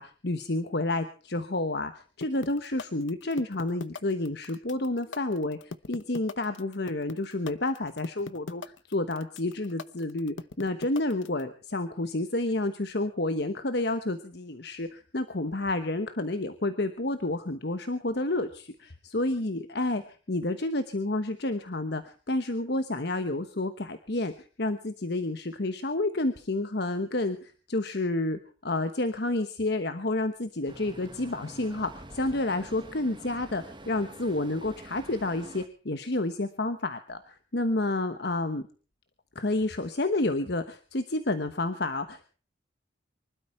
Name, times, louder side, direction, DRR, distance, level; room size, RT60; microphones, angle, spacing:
voice 1, 0.0-38.7 39.3-42.3, left 2 dB, 55° left, 9 dB, 1.1 m, -30 dB
sound 1, 2.2-11.4, left 4 dB, 70° left, 0.9 m, -39 dB
Traffic noise roadway noise, 30.7-35.7, right 1 dB, 25° right, 1.5 m, -47 dB
24.5 x 12.5 x 4.4 m, 0.40 s
head